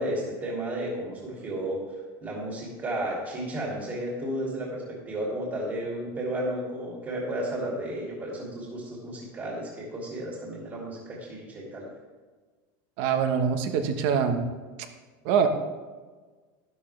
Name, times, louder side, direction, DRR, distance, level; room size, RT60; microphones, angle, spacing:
voice 1, 0.0-1.8 2.2-11.8, right 1 dB, 25° right, -3 dB, 2.6 m, -33 dB
voice 2, 13.0-14.5 15.2-15.5, right 7 dB, 55° right, 7 dB, 1.2 m, -24 dB
12.5 x 11.5 x 3.3 m, 1.4 s
supercardioid pair, 160°, 11 cm